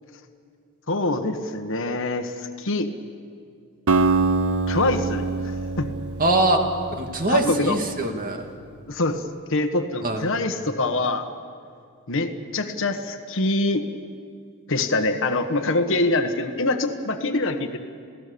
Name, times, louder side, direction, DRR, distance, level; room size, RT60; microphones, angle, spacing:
voice 1, 0.9-2.9 4.7-5.3 5.8-5.9 7.3-7.8 8.9-9.2 9.5-11.3 12.1-13.8 14.7-17.8, left 2 dB, 60° left, 6 dB, 1.4 m, -24 dB
Acoustic guitar, 3.9-8.0, right 3 dB, 75° right, 1.2 m, -25 dB
voice 2, 6.2-6.6 7.0-8.5 10.0-10.2, right 2 dB, 40° right, 3 dB, 2.3 m, -23 dB
28.5 x 17.0 x 6.9 m, 2.3 s
head